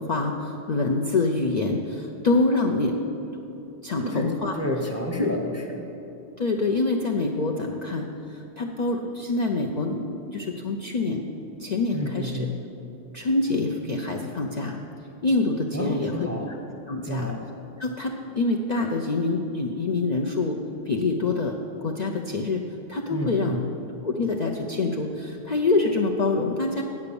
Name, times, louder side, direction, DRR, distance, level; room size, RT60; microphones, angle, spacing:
voice 1, 0.0-3.4 3.8-4.6 5.2-5.3 6.4-11.2 11.6-12.5 13.1-14.8 15.2-16.6 16.9-17.3 17.8-20.6 20.9-21.5 21.8-22.6 22.9-23.6 24.0-26.8, left 3 dB, 50° left, 1 dB, 0.5 m, -26 dB
voice 2, 4.6-5.8 11.9-12.6 15.7-16.5 17.0-17.5 23.1-23.7, left 1 dB, 15° right, 0 dB, 0.8 m, -30 dB
8.4 x 8.0 x 6.9 m, 2.9 s
omnidirectional pair, 1.3 m